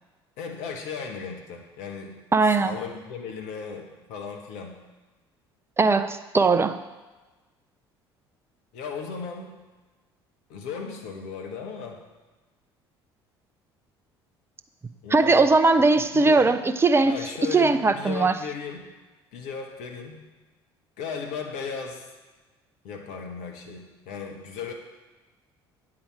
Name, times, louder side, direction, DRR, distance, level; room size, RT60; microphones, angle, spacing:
voice 1, 0.4-2.2 2.4-4.8 8.7-9.6 10.5-12.0 15.0-15.5 15.8-15.9 16.1-16.6 17.0-18.8 19.3-20.2 21.0-22.1 22.8-24.7, left 6 dB, 60° left, 2 dB, 1.2 m, -36 dB
voice 2, 2.3-2.8 5.8-6.8 15.1-17.2 17.5-18.4, right 3 dB, 20° right, 12 dB, 0.6 m, -19 dB
8.7 x 5.0 x 7.2 m, 1.2 s
figure-of-eight pair, 55°, 13 cm